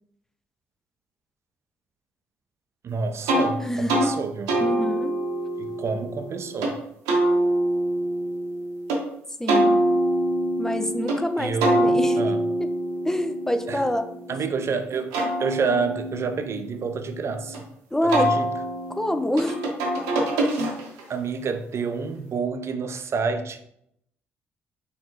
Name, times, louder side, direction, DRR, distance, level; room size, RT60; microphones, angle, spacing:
voice 1, 2.8-4.5 5.6-6.7 11.4-12.4 13.7-13.8 14.3-17.6 18.0-18.5 20.6-20.8 21.1-23.6, right 5 dB, 45° right, 7 dB, 0.6 m, -28 dB
sound 1, 3.3-3.5 3.9-4.1 4.5-6.7 7.1-9.0 9.5-11.2 11.6-14.5 14.9-17.6 18.1-21.1, right 1 dB, 75° right, 1.0 m, -25 dB
voice 2, 3.6-4.0 4.6-5.2 9.4-9.8 10.6-12.3 13.0-14.4 17.9-18.3 18.9-19.5, left 1 dB, 10° left, 9 dB, 0.6 m, -26 dB
4.6 x 3.4 x 3.0 m, 0.73 s
hypercardioid pair, 45°, 6 cm